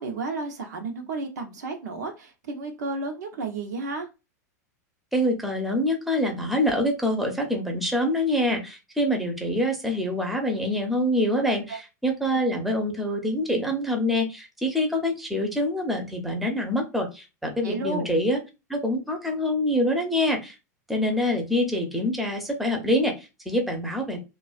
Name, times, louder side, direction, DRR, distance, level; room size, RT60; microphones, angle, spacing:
voice 1, 0.0-4.1 11.7-11.8 12.3-12.4 17.6-18.1, right 3 dB, 85° right, 4 dB, 0.7 m, -32 dB
voice 2, 5.1-18.4 18.7-20.5 20.9-24.2, left 1 dB, ahead, 3 dB, 0.6 m, -25 dB
2.4 x 2.3 x 2.4 m, 0.27 s
hypercardioid pair, 115°, 9 cm